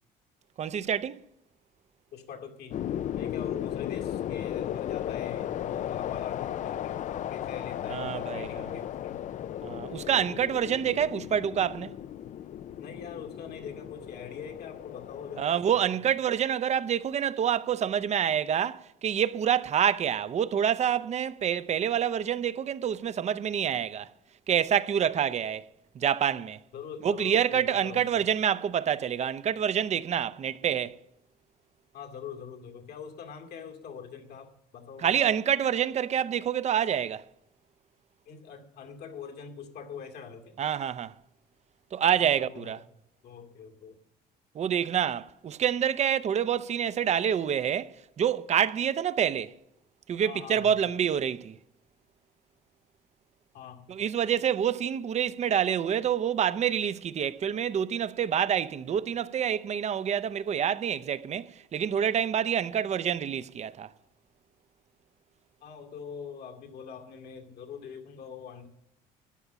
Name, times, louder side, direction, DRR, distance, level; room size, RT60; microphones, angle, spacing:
voice 1, 0.6-1.2 7.9-8.6 9.6-11.9 15.4-24.1 24.5-25.6 25.9-26.6 27.0-31.0 35.0-37.2 40.6-41.1 41.9-42.8 44.5-49.5 50.1-51.6 53.9-63.9, right 9 dB, 40° right, 0.6 m, -27 dB
voice 2, 2.1-2.8 3.2-9.2 12.8-16.0 26.7-28.3 31.9-35.2 38.3-40.6 42.2-42.8 43.2-44.0 50.2-50.7 53.5-53.9 65.6-68.7, left 7 dB, 70° left, 2.3 m, -43 dB
sound 1, 2.7-15.4, left 11 dB, 45° left, 0.4 m, -35 dB
13.0 x 10.0 x 7.0 m
cardioid pair, 110°, 17 cm